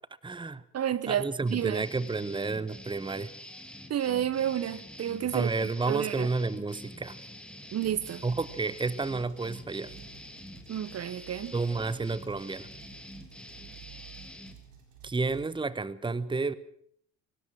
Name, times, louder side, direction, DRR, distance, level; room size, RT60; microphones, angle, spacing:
voice 1, 0.2-0.6 1.1-3.3 5.3-7.2 8.2-9.9 11.5-12.7 15.0-16.5, right 3 dB, 15° right, 1.2 m, -31 dB
voice 2, 0.7-1.8 3.9-5.5 5.9-6.3 7.7-8.2 10.7-11.5, right 10 dB, 40° right, 1.1 m, -30 dB
sound 1, 1.5-14.6, left 1 dB, 5° left, 3.1 m, -47 dB
sound 2, 7.8-15.5, right 9 dB, 90° right, 3.9 m, -53 dB
23.5 x 19.0 x 6.2 m
hypercardioid pair, 60°, 37 cm